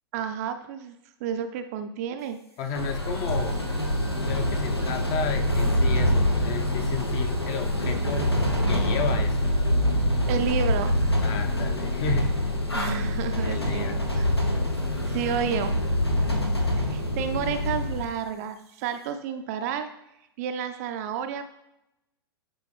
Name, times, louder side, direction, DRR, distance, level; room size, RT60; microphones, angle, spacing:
voice 1, 0.1-1.0 1.2-2.4 10.3-11.0 12.7-14.3 15.0-15.8 16.8-19.9 20.4-21.4, right 8 dB, 40° right, 8 dB, 0.5 m, -31 dB
voice 2, 2.6-3.6 4.2-8.3 8.7-9.5 11.2-12.7 13.4-14.0, left 5 dB, 30° left, 6 dB, 0.8 m, -33 dB
sound 1, 2.8-18.1, left 1 dB, 90° left, 0.8 m, -25 dB
9.5 x 3.7 x 3.2 m, 0.85 s
figure-of-eight pair, 100°, 13 cm